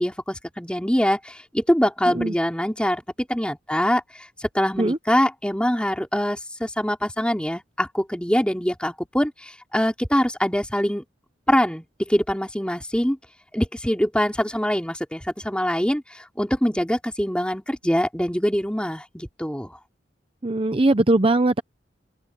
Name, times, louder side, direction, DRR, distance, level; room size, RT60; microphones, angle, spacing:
voice 1, 0.0-3.0 3.3-4.0 4.4-11.0 11.5-13.2 13.5-19.8, equal, 5° left, 3.5 m, -24 dB
voice 2, 20.4-21.6, right 2 dB, 30° right, 0.7 m, -20 dB
open air
head